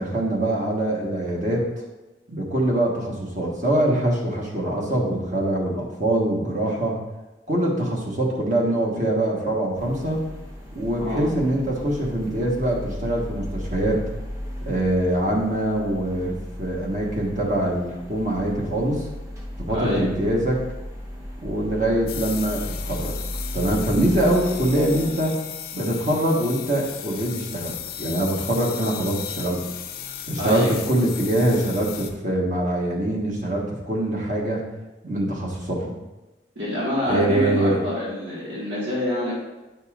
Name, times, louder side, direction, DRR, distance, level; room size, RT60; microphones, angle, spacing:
voice 1, 0.0-1.7 2.3-7.0 7.5-10.2 10.7-14.0 14.7-16.3 16.6-19.0 19.6-20.6 21.4-23.1 23.5-25.4 25.7-29.6 30.3-34.6 35.0-35.9 37.0-37.8, right 1 dB, 45° right, -2 dB, 1.4 m, -23 dB
sound 1, 9.7-25.2, equal, 15° right, 0.9 m, -35 dB
voice 2, 19.7-20.1 30.4-30.7 36.6-39.3, left 1 dB, 90° right, -7 dB, 1.8 m, -26 dB
sound 2, 22.1-32.1, left 9 dB, 55° left, 0.5 m, -35 dB
9.1 x 5.3 x 2.5 m, 1.1 s
head